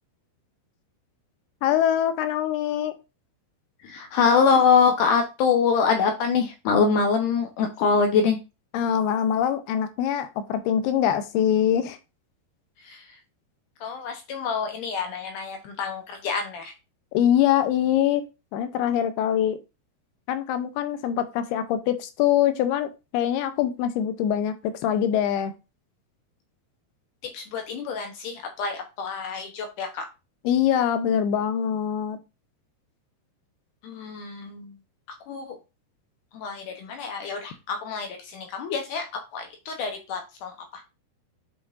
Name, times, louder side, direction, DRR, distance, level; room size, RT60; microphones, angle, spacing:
voice 1, 1.6-2.9 8.7-12.0 17.1-18.2 18.5-19.6 20.3-25.5 30.5-32.2, left 10 dB, 85° left, 10 dB, 2.6 m, -23 dB
voice 2, 3.8-8.4 12.8-13.2 13.8-16.7 27.2-30.1 33.8-34.8 35.3-35.6 36.3-40.8, left 5 dB, 70° left, 4 dB, 2.1 m, -25 dB
9.3 x 5.2 x 2.6 m, 0.27 s
omnidirectional pair, 4.6 m